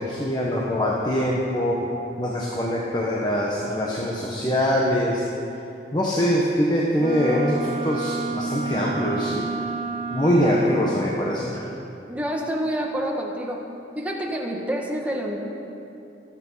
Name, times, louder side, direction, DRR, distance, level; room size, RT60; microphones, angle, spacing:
voice 1, 0.0-1.9 2.2-5.2 5.9-9.6 10.1-11.6, equal, 25° left, -3 dB, 1.3 m, -23 dB
Wind instrument woodwind instrument, 7.0-11.0, right 4 dB, 30° right, 0.9 m, -30 dB
voice 2, 12.1-13.6 14.0-15.4, equal, 10° right, -1 dB, 1.6 m, -27 dB
25.0 x 9.0 x 5.7 m, 2.8 s
head